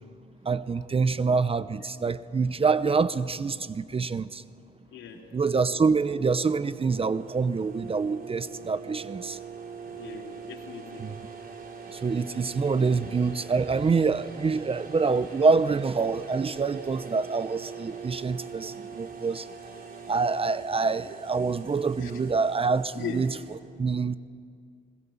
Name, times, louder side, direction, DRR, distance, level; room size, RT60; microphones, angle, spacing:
voice 1, 0.4-4.4 5.3-9.4 11.0-11.2 11.9-19.5 20.1-23.4 23.8-24.1, right 4 dB, 30° right, 15 dB, 0.7 m, -26 dB
voice 2, 4.9-5.2 9.9-11.1 12.9-13.0 22.0-22.1 23.0-23.2, left 7 dB, 75° left, 2 dB, 3.2 m, -39 dB
sound 1, 5.7-23.6, right 5 dB, 50° right, 4.4 m, -43 dB
26.0 x 21.0 x 7.2 m, 2.2 s
cardioid pair, 90°, 20 cm